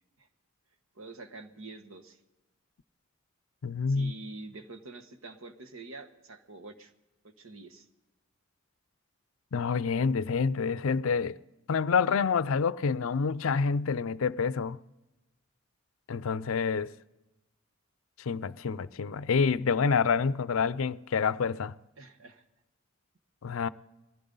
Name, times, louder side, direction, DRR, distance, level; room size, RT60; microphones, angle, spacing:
voice 1, 0.9-2.2 3.9-6.9 7.2-7.9 22.0-22.4, right 3 dB, 80° right, 1.3 m, -46 dB
voice 2, 3.6-4.1 9.5-11.4 11.7-14.8 16.1-16.9 18.3-21.7 23.4-23.7, left 5 dB, 80° left, 0.5 m, -27 dB
21.5 x 15.5 x 3.9 m
head